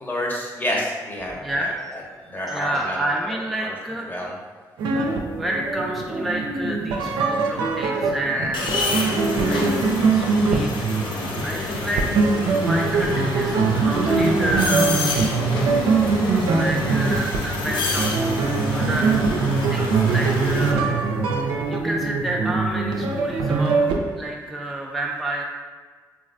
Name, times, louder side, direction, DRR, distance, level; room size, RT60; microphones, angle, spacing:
voice 1, 0.0-2.0 2.3-3.0 3.3-3.7 4.1-4.3 8.2-8.5 11.2-11.5 20.1-20.3, left 1 dB, 25° left, -2 dB, 0.8 m, -30 dB
voice 2, 1.4-2.0 2.5-4.1 5.4-10.9 11.1-12.1 12.6-15.0 16.5-20.9 21.4-23.9 24.1-25.4, right 1 dB, ahead, -2 dB, 0.3 m, -30 dB
sound 1, 4.8-24.0, right 4 dB, 80° right, 0.3 m, -22 dB
Electric butcher's bone saw, 8.5-20.7, left 2 dB, 70° left, 0.5 m, -28 dB
3.1 x 2.4 x 2.5 m, 1.5 s
supercardioid pair, 50°, 8 cm